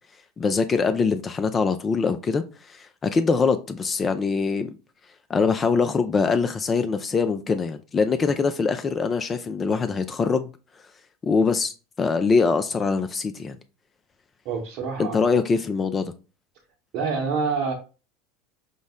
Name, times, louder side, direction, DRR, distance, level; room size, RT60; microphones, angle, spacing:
voice 1, 0.4-4.7 5.3-10.5 11.2-13.6 15.0-16.1, left 4 dB, 25° left, 0.4 m, -23 dB
voice 2, 14.4-15.4 16.9-17.7, right 5 dB, 55° right, 0.9 m, -27 dB
5.2 x 2.0 x 3.5 m
hypercardioid pair, 80°, 0 cm